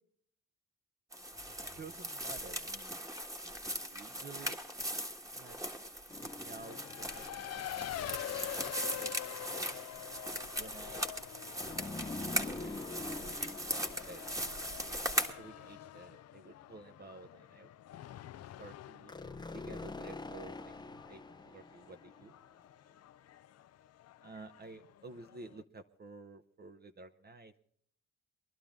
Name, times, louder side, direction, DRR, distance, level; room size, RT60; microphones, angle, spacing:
sound 1, 1.1-15.3, right 1 dB, 10° right, 1.4 m, -39 dB
voice 1, 1.8-3.0 3.4-4.6 5.3-5.6 6.2-8.7 9.0-9.3 10.6-11.0 11.6-12.1 12.4-12.9 13.7-14.5 14.8-15.1 15.4-18.0 18.3-19.1 19.5-20.7 21.1-22.3 24.2-27.7, right 3 dB, 30° right, 8 dB, 0.9 m, -52 dB
sound 2, 6.1-7.7 11.6-15.3 19.1-22.4, left 3 dB, 15° left, 0.7 m, -45 dB
Race car auto racing, 6.5-25.6, left 12 dB, 55° left, 0.5 m, -47 dB
22.5 x 11.5 x 3.6 m, 0.63 s
cardioid pair, 90°, 30 cm